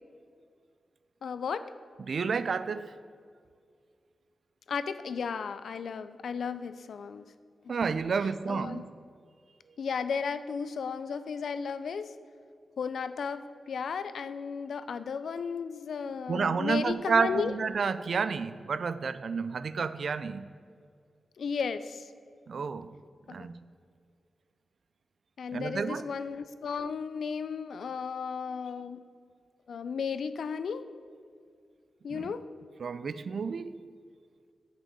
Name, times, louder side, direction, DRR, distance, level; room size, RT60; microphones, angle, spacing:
voice 1, 1.2-1.6 4.7-7.2 8.5-8.8 9.8-12.1 12.8-17.5 21.4-22.1 23.3-23.5 25.4-29.0 29.7-30.8 32.0-32.4, left 6 dB, 80° left, 12 dB, 0.4 m, -34 dB
voice 2, 2.1-2.9 7.7-8.9 16.3-20.5 22.5-22.9 23.3-23.6 25.5-26.1 32.1-32.3 32.8-33.8, right 5 dB, 70° right, 14 dB, 0.3 m, -30 dB
6.0 x 5.4 x 6.6 m, 2.2 s
cardioid pair, 50°, 0 cm